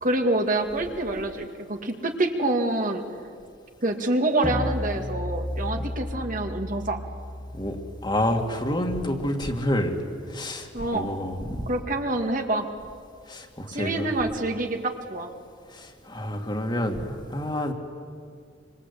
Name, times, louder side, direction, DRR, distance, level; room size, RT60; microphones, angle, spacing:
voice 1, 0.0-3.0 3.8-7.0 10.7-11.1 11.7-12.7 13.7-15.3, right 2 dB, 45° right, 4 dB, 2.2 m, -26 dB
sound 1, 4.4-9.8, left 1 dB, 5° left, 1.1 m, -34 dB
voice 2, 8.0-10.0 10.3-11.7 13.3-14.1 15.7-17.7, left 1 dB, 25° left, 3 dB, 2.4 m, -28 dB
26.5 x 26.0 x 8.4 m, 2.2 s
head